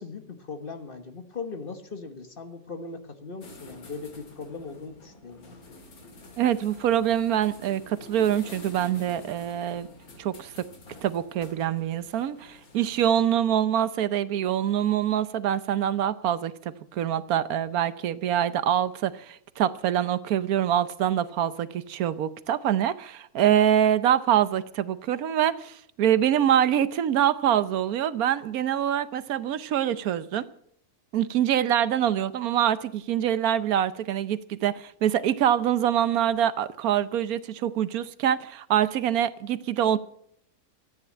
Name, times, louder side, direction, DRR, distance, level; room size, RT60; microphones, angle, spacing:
voice 1, 0.0-5.5, left 4 dB, 40° left, 1.4 m, -39 dB
sound 1, 3.4-13.3, left 2 dB, 80° left, 2.5 m, -48 dB
voice 2, 6.4-9.9 10.2-10.7 11.0-16.5 16.9-30.5 31.1-40.0, right 10 dB, 80° right, 1.2 m, -25 dB
13.5 x 9.5 x 8.5 m
omnidirectional pair, 1.5 m